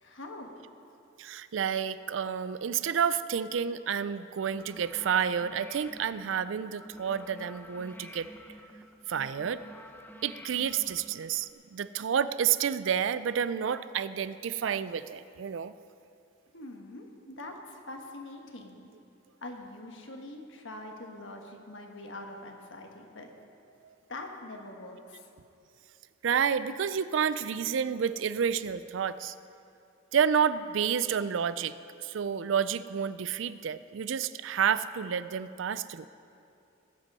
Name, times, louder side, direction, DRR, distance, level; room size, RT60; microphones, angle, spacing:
voice 1, 0.0-0.5 16.5-18.9 19.4-23.3 24.1-25.3, left 2 dB, 70° left, 3 dB, 1.4 m, -44 dB
voice 2, 1.2-8.3 9.1-9.6 10.2-15.7 26.2-29.3 30.1-36.1, right 7 dB, 70° right, 15 dB, 0.4 m, -30 dB
sound 1, 4.4-11.5, equal, 10° left, 0.7 m, -50 dB
19.5 x 8.0 x 5.5 m, 2.7 s
head